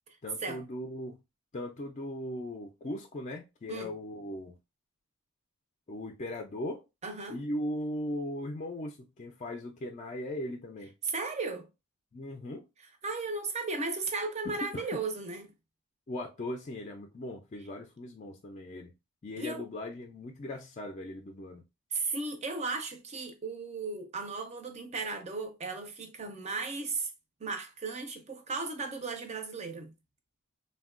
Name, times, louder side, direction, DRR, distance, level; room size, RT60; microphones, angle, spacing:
voice 1, 0.2-1.2 1.5-4.6 5.9-6.8 7.3-10.9 12.1-12.6 14.5-14.8 16.1-18.9 19.2-21.6, left 1 dB, 35° left, 0.4 m, -38 dB
voice 2, 7.0-7.4 11.0-11.7 12.8-15.5 19.4-19.7 21.9-27.1 27.4-29.9, right 3 dB, 35° right, 0.5 m, -35 dB
3.4 x 2.2 x 2.4 m
head